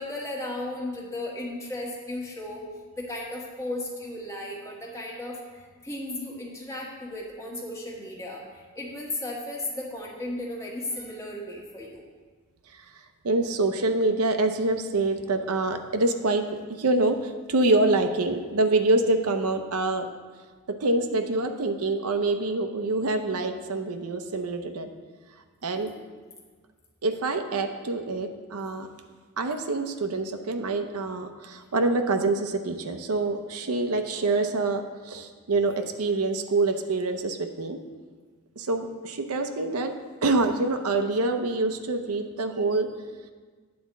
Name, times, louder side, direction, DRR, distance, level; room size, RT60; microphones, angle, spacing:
voice 1, 0.0-2.7 2.9-12.0, left 1 dB, 15° left, -3 dB, 1.4 m, -35 dB
voice 2, 13.2-16.4 16.8-20.1 20.7-24.9 25.6-25.9 27.0-28.9 29.4-37.8 38.6-39.9 40.2-42.9, right 2 dB, 80° right, 6 dB, 0.7 m, -26 dB
9.5 x 4.3 x 7.1 m, 1.4 s
head